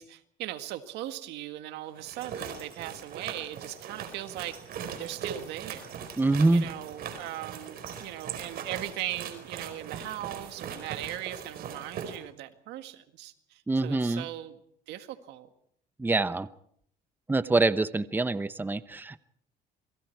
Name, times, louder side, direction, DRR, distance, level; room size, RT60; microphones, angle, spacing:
voice 1, 0.0-4.6 5.0-6.0 6.5-14.6 14.9-15.5, right 14 dB, 90° right, 9 dB, 1.9 m, -39 dB
sound 1, 2.0-12.2, right 7 dB, 65° right, 4.7 m, -40 dB
voice 2, 6.2-6.7 13.7-14.3 16.0-16.5 17.3-19.2, right 2 dB, 10° right, 13 dB, 0.9 m, -25 dB
28.5 x 22.5 x 4.6 m, 0.67 s
cardioid pair, 110°, 17 cm